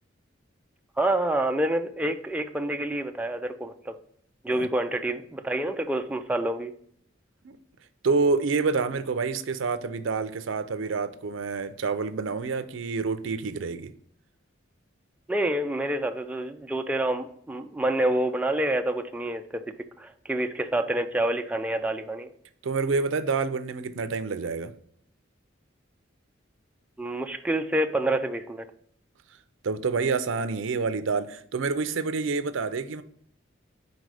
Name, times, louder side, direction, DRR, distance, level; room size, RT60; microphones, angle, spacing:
voice 1, 1.0-4.0 4.4-6.7 15.3-19.6 20.0-22.3 27.0-28.7, right 1 dB, 5° right, 0.4 m, -27 dB
voice 2, 8.0-13.9 22.6-24.7 29.6-33.0, right 4 dB, 75° right, 0.5 m, -28 dB
5.2 x 4.1 x 4.7 m
head